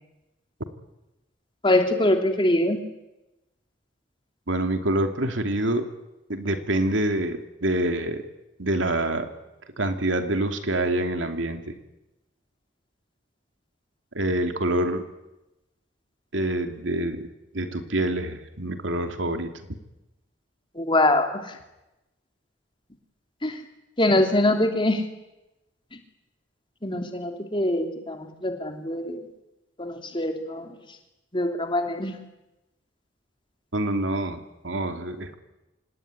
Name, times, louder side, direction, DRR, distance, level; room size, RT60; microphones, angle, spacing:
voice 1, 1.6-2.8 20.7-21.4 23.4-23.6 24.0-25.0 26.8-29.2 29.8-30.8 31.3-32.2, left 1 dB, 25° left, 5 dB, 3.1 m, -23 dB
voice 2, 4.5-5.9 6.3-8.2 8.6-9.3 9.8-11.7 14.1-15.0 16.3-17.3 17.5-19.5 33.7-35.3, right 1 dB, 85° right, 6 dB, 2.8 m, -26 dB
26.0 x 19.5 x 9.7 m, 0.96 s
head